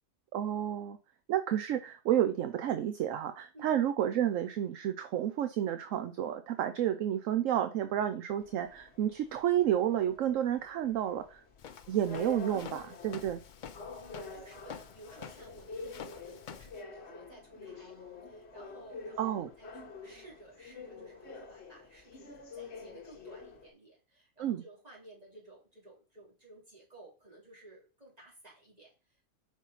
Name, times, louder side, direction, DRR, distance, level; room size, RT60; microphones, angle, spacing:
voice 1, 0.3-1.0 1.3-11.4 11.9-13.4 19.2-19.5 24.4-24.6, right 10 dB, 70° right, 9 dB, 1.0 m, -30 dB
sound 1, 8.4-23.7, left 4 dB, 50° left, 1.3 m, -48 dB
Walk footsteps, 11.6-16.8, left 7 dB, 75° left, 0.4 m, -48 dB
voice 2, 14.0-18.0 18.2-29.3, right 2 dB, 25° right, -3 dB, 2.8 m, -55 dB
5.3 x 5.0 x 5.5 m, 0.33 s
omnidirectional pair, 1.5 m